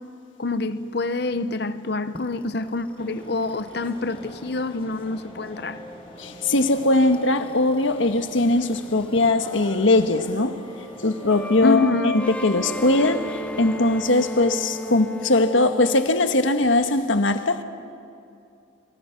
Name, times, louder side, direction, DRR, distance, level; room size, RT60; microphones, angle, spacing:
voice 1, 0.4-5.8 11.6-12.2, left 3 dB, 55° left, 0.8 m, -26 dB
sound 1, 2.1-9.3 9.6-16.0, left 1 dB, 5° left, 0.6 m, -38 dB
sound 2, 3.0-11.4, equal, 30° left, 5.1 m, -45 dB
voice 2, 6.2-10.6 11.0-17.6, left 2 dB, 80° left, 1.4 m, -20 dB
30.0 x 24.0 x 5.9 m
head